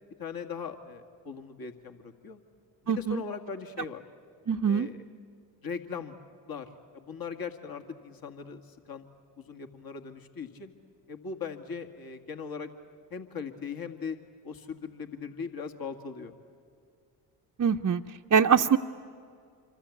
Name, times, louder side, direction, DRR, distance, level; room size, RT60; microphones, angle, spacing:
voice 1, 0.2-2.4 2.8-4.0 4.7-5.1 5.6-6.2 6.5-9.1 9.4-10.7 11.1-12.7 13.1-14.2 14.4-16.4, left 5 dB, 45° left, 6 dB, 2.1 m, -39 dB
voice 2, 2.9-3.2 4.5-4.9 17.6-18.0 18.3-18.8, right 7 dB, 35° right, 1 dB, 0.8 m, -23 dB
27.0 x 24.5 x 8.5 m, 2.3 s
hypercardioid pair, 50°, 49 cm